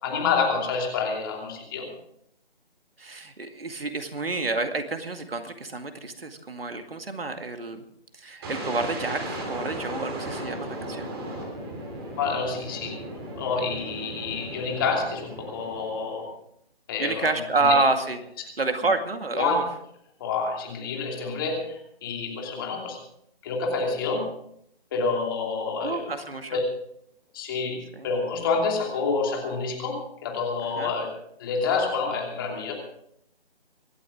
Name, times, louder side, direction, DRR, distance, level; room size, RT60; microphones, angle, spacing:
voice 1, 0.0-1.9 12.2-13.0 13.3-16.3 16.9-17.3 17.6-17.7 19.3-19.6 20.2-23.0 23.4-24.3 24.9-26.1 26.5-26.6 27.3-31.1 31.4-32.7, left 4 dB, 20° left, 0 dB, 2.9 m, -28 dB
voice 2, 3.0-7.8 8.1-11.1 17.0-18.2 18.6-19.6 25.8-26.6 27.9-28.1 30.8-30.9, right 3 dB, 65° right, 7 dB, 2.2 m, -28 dB
sound 1, 8.4-16.3, right 1 dB, 25° right, 3.3 m, -36 dB
26.0 x 12.0 x 3.7 m, 0.74 s
figure-of-eight pair, 155°, 32 cm